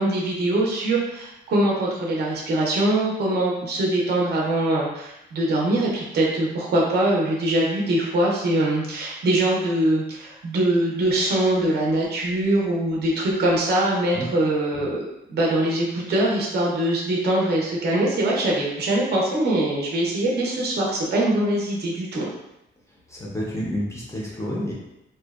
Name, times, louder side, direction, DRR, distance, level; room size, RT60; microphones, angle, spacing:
voice 1, 0.0-22.3, right 1 dB, 55° right, -3 dB, 0.5 m, -23 dB
voice 2, 22.9-24.7, equal, 15° left, -5 dB, 0.4 m, -30 dB
2.6 x 2.0 x 2.3 m, 0.87 s
wide cardioid pair, 180°, 21 cm